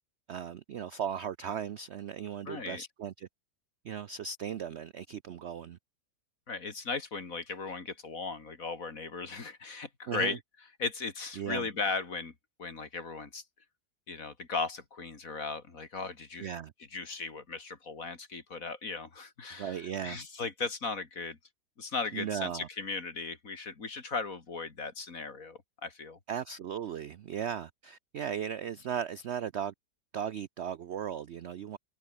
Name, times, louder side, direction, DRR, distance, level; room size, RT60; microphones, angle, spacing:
voice 1, 0.3-3.3 3.8-5.8 10.1-10.4 11.4-11.6 16.4-16.7 19.6-20.2 22.1-22.7 26.3-29.7 30.1-31.8, right 8 dB, 65° right, 0.6 m, -37 dB
voice 2, 2.4-2.8 6.5-12.3 12.6-13.4 14.1-16.5 16.8-21.4 21.8-26.2, left 4 dB, 50° left, 3.0 m, -37 dB
omnidirectional pair, 1.8 m